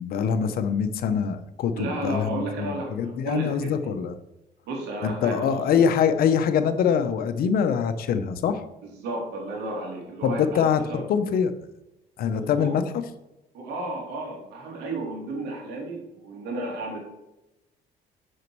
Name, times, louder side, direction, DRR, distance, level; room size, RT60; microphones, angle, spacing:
voice 1, 0.0-4.1 5.0-8.6 10.2-10.8 11.1-11.5 12.2-12.8, left 7 dB, 60° left, 10 dB, 0.8 m, -24 dB
voice 2, 1.7-3.9 4.7-5.6 8.8-11.0 12.3-12.8 13.5-17.0, right 2 dB, 80° right, 0 dB, 2.8 m, -33 dB
6.5 x 5.2 x 6.1 m, 0.96 s
cardioid pair, 110°, 17 cm